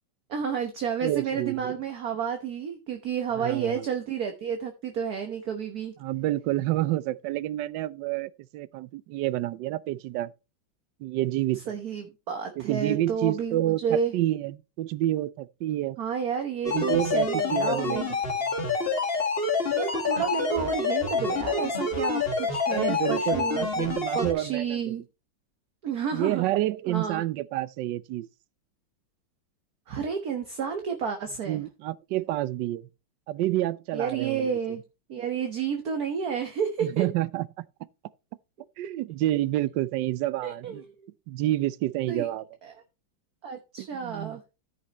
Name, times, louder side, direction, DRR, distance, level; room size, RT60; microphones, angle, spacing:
voice 1, 0.3-5.9 11.7-14.1 16.0-18.1 19.7-25.0 25.8-26.5 26.9-27.2 29.9-31.6 33.9-34.8 35.1-37.0 40.4-41.1 42.1-42.3 42.6-42.7 43.4-44.4, right 7 dB, 55° right, 1.6 m, -31 dB
voice 2, 1.0-1.7 3.3-3.9 6.0-10.3 11.0-11.7 12.6-16.0 16.7-18.0 22.7-25.0 26.1-28.3 31.5-32.9 33.3-34.5 36.8-37.5 38.8-40.8 41.3-42.4 43.8-44.4, right 15 dB, 75° right, 1.2 m, -29 dB
sound 1, 16.6-24.3, left 4 dB, 30° left, 2.2 m, -27 dB
14.0 x 6.0 x 3.0 m
omnidirectional pair, 2.1 m